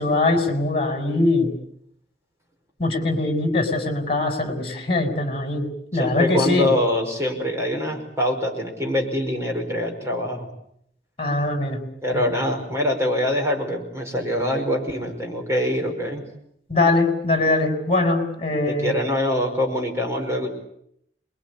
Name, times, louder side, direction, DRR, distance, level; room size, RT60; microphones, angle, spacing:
voice 1, 0.0-1.5 2.8-6.7 11.2-11.8 12.1-12.3 16.7-18.9, left 2 dB, 30° left, 6 dB, 6.5 m, -22 dB
voice 2, 5.9-10.5 12.0-16.2 18.7-20.5, left 1 dB, 15° right, 2 dB, 5.3 m, -24 dB
27.5 x 22.5 x 8.7 m, 0.72 s
head